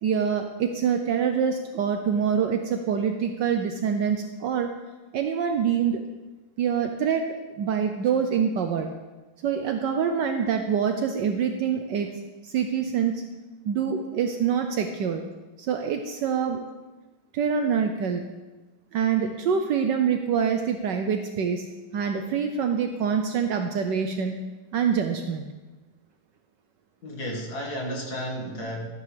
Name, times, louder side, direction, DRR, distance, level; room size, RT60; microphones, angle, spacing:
voice 1, 0.0-4.7 5.1-6.0 6.6-7.3 7.6-8.9 9.4-12.1 12.5-13.2 13.6-15.2 15.6-16.6 17.3-18.2 18.9-21.7 21.9-24.4 24.7-25.5, right 7 dB, 70° right, 5 dB, 1.3 m, -25 dB
voice 2, 27.0-28.9, equal, 55° left, -1 dB, 2.4 m, -32 dB
14.0 x 9.3 x 3.5 m, 1.2 s
omnidirectional pair, 2.1 m